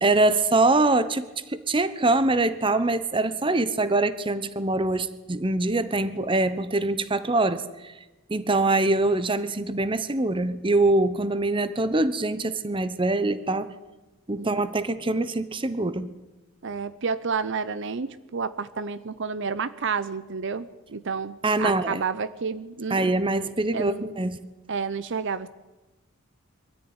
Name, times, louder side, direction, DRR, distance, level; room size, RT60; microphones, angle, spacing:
voice 1, 0.0-7.9 8.3-13.7 14.3-16.1 21.4-22.0 22.9-24.4, right 2 dB, 25° right, 14 dB, 1.0 m, -24 dB
voice 2, 16.6-23.1 23.7-24.1 24.7-25.5, right 5 dB, 60° right, 15 dB, 0.7 m, -30 dB
23.0 x 14.0 x 9.7 m, 1.1 s
head